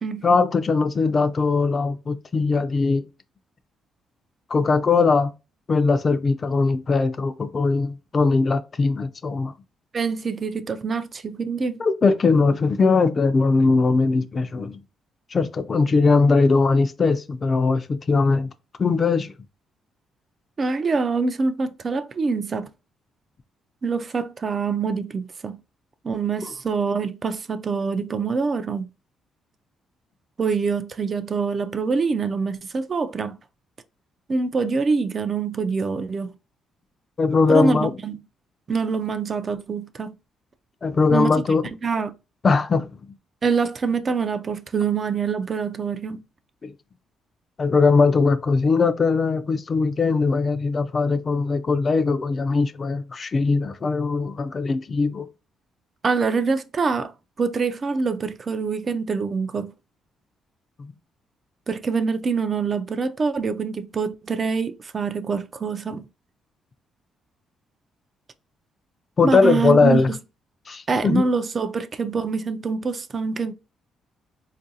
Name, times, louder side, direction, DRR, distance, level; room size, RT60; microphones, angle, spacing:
voice 1, 0.2-3.0 4.5-5.3 5.7-9.5 11.8-14.8 15.3-18.5 18.8-19.3 37.2-37.9 40.8-41.7 42.4-42.9 46.6-46.7 47.6-55.3 69.2-70.1 70.7-71.2, left 4 dB, 40° left, 0.3 m, -20 dB
voice 2, 9.9-11.8 20.6-22.7 23.8-25.6 26.0-28.9 30.4-33.4 34.3-36.3 37.5-38.2 38.7-40.1 41.1-41.3 41.8-42.1 43.4-46.2 56.0-57.1 57.4-59.7 61.7-66.0 69.2-70.2 70.9-73.5, right 5 dB, 40° right, 0.3 m, -25 dB
3.7 x 2.4 x 2.7 m
cardioid pair, 90°, 0 cm